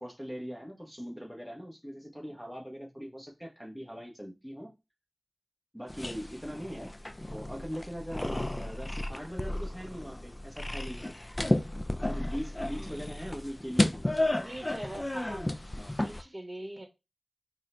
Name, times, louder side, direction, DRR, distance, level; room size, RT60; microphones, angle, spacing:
voice 1, 0.0-4.7 5.7-7.0 7.3-11.0 12.0-14.5 15.7-16.0, equal, ahead, 0.9 m, -41 dB
sound 1, 5.9-16.2, left 1 dB, 25° left, 0.4 m, -33 dB
voice 2, 12.7-13.0 14.3-15.5 15.8-16.9, right 1 dB, 30° right, 1.1 m, -43 dB
3.6 x 2.1 x 4.2 m
wide cardioid pair, 65°, 0 cm